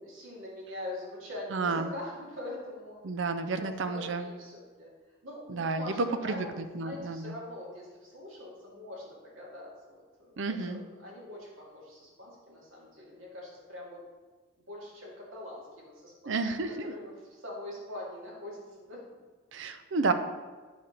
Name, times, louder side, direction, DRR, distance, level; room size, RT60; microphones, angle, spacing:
voice 1, 0.0-3.0 3.6-4.9 5.2-14.0 14.7-16.4 16.6-19.2, left 1 dB, 80° right, -4 dB, 2.1 m, -43 dB
voice 2, 1.5-1.9 3.0-4.3 5.5-7.4 10.4-10.8 16.3-16.9 19.5-20.1, right 3 dB, 60° right, 9 dB, 0.5 m, -31 dB
8.8 x 3.4 x 5.6 m, 1.3 s
head